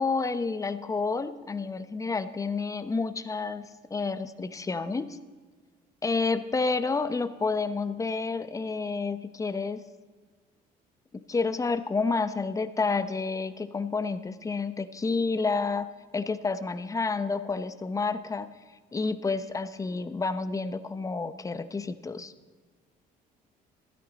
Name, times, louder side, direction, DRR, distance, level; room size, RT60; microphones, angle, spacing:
voice 1, 0.0-5.2 6.0-9.8 11.1-18.5 18.9-22.3, left 4 dB, 20° left, 12 dB, 0.7 m, -30 dB
14.5 x 12.0 x 4.0 m, 1.4 s
cardioid pair, 110°, 17 cm